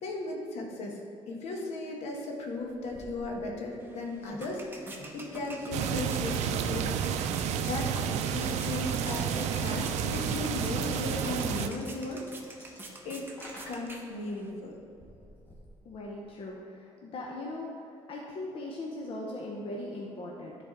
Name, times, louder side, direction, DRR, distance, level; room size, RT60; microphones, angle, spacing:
voice 1, 0.0-1.0 1.3-6.9 7.6-12.2 13.0-13.3 13.6-14.8, left 2 dB, 75° left, 0 dB, 1.2 m, -36 dB
sound 1, 2.6-16.5, equal, 20° left, 1.4 m, -54 dB
sound 2, 3.8-14.5, right 2 dB, 20° right, 0.8 m, -47 dB
sound 3, 5.7-11.7, right 8 dB, 80° right, 0.4 m, -31 dB
voice 2, 15.8-17.7 18.1-20.6, left 2 dB, 50° left, -2 dB, 0.8 m, -39 dB
9.8 x 4.1 x 3.6 m, 2.5 s
cardioid pair, 100°, 11 cm